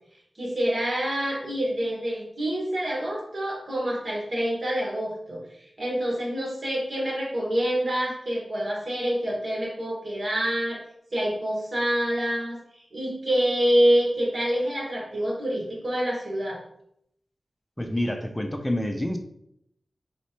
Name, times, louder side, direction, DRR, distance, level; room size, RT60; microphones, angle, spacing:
voice 1, 0.4-10.8 11.1-12.6 12.9-16.6, equal, 60° right, -3 dB, 1.4 m, -26 dB
voice 2, 17.8-19.2, left 1 dB, 10° left, 5 dB, 0.5 m, -27 dB
3.2 x 3.1 x 2.9 m, 0.73 s
wide cardioid pair, 65°, 0 cm